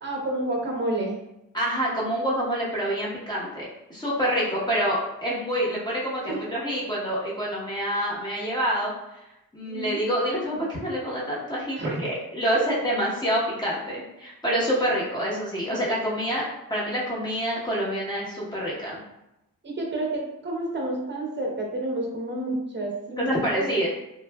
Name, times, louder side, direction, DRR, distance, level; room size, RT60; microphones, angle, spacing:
voice 1, 0.0-1.1 4.2-4.4 6.3-6.4 9.7-10.0 11.8-12.0 19.6-23.8, right 1 dB, 35° right, -1 dB, 0.7 m, -30 dB
voice 2, 1.5-8.9 9.5-16.4 16.7-19.0 23.2-23.9, equal, 15° left, -5 dB, 0.9 m, -27 dB
3.1 x 2.4 x 2.2 m, 0.89 s
wide cardioid pair, 95°, 33 cm